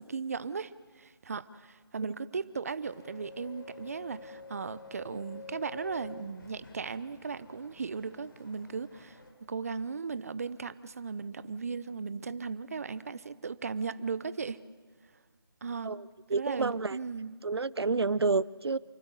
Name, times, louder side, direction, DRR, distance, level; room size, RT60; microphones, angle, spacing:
voice 1, 0.0-9.2 9.5-14.6 15.6-15.9 16.3-17.4, right 5 dB, 35° right, 16 dB, 0.7 m, -37 dB
sound 1, 2.8-9.3, left 3 dB, 55° left, 3.5 m, -49 dB
voice 2, 16.3-17.0 17.4-18.8, right 4 dB, 80° right, 21 dB, 0.6 m, -29 dB
28.5 x 12.5 x 8.1 m, 1.5 s
figure-of-eight pair, 165°, 13 cm